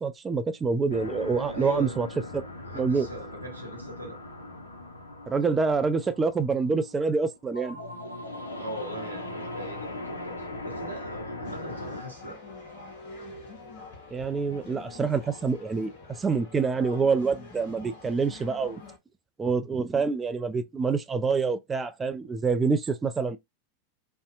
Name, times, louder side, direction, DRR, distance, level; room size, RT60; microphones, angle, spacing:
voice 1, 0.0-2.1 2.3-2.4 2.7-3.1 5.3-7.8 14.1-15.9 16.2-18.8 19.4-23.4, right 4 dB, 15° right, 0.4 m, -26 dB
sound 1, 0.9-12.0, left 1 dB, 75° left, 0.6 m, -39 dB
voice 2, 1.5-2.0 2.6-4.2 8.5-12.4, equal, 90° right, 0.9 m, -40 dB
sound 2, 11.4-19.0, left 3 dB, 55° left, 0.9 m, -46 dB
2.6 x 2.1 x 2.5 m
figure-of-eight pair, 90°, 0 cm